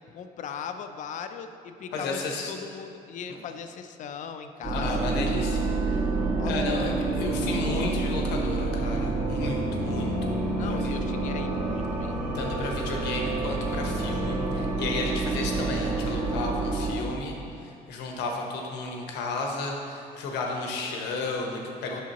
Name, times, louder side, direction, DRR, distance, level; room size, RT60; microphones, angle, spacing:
voice 1, 0.1-5.3 6.4-7.1 10.6-12.7 21.9-22.0, left 7 dB, 45° left, 8 dB, 0.4 m, -39 dB
voice 2, 1.9-2.5 4.7-6.0 6.5-10.3 10.7-10.9 12.3-22.0, left 3 dB, 90° left, 1 dB, 1.0 m, -33 dB
sound 1, 4.6-16.9, right 2 dB, 50° right, 1.6 m, -28 dB
8.4 x 6.1 x 3.0 m, 2.5 s
cardioid pair, 110°, 17 cm